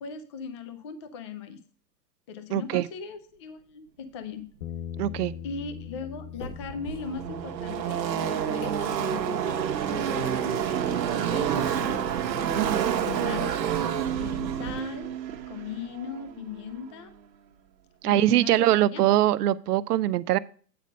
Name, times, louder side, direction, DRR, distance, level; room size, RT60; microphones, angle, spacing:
voice 1, 0.0-1.6 2.3-4.5 5.4-10.8 11.3-12.1 12.5-13.5 14.2-15.2 15.5-17.1 18.0-19.0, left 6 dB, 20° left, 10 dB, 0.3 m, -39 dB
voice 2, 2.5-2.9 5.0-5.3 12.5-12.9 18.0-20.4, right 13 dB, 65° right, 17 dB, 0.7 m, -23 dB
sound 1, 4.0-8.0 8.3-9.3 9.8-9.9 10.2-10.5 10.9-11.0 11.5-11.6 11.8-12.0 12.5-12.6 12.7-12.9 13.2-13.3 13.6-14.7, equal, 80° left, 4.8 m, -49 dB
Bass guitar, 4.6-10.9, left 9 dB, 60° left, 0.8 m, -43 dB
Car passing by / Race car auto racing, 6.0-6.1 6.3-16.8, right 9 dB, 85° right, 1.1 m, -29 dB
9.2 x 5.2 x 5.4 m, 0.43 s
hypercardioid pair, 135°, 50 cm